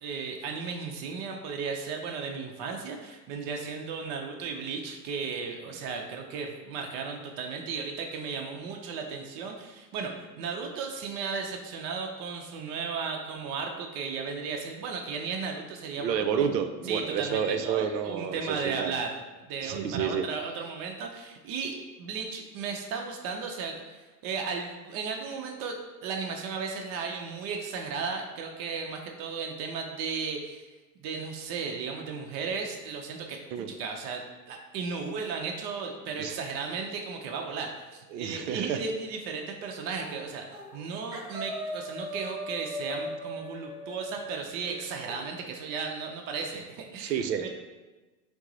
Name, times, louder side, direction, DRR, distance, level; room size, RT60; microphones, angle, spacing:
voice 1, 0.0-16.5 16.9-19.2 19.5-30.7 31.0-40.5 40.7-47.5, right 5 dB, 45° right, 2 dB, 0.6 m, -35 dB
voice 2, 16.0-19.0 19.6-20.2 33.5-33.7 36.1-36.4 38.1-38.8 47.0-47.5, right 7 dB, 90° right, 8 dB, 0.6 m, -30 dB
sound 1, 40.0-40.2 40.5-40.8 41.1-45.2, equal, 10° right, 0.8 m, -39 dB
5.9 x 2.0 x 3.8 m, 1.2 s
hypercardioid pair, 100°, 49 cm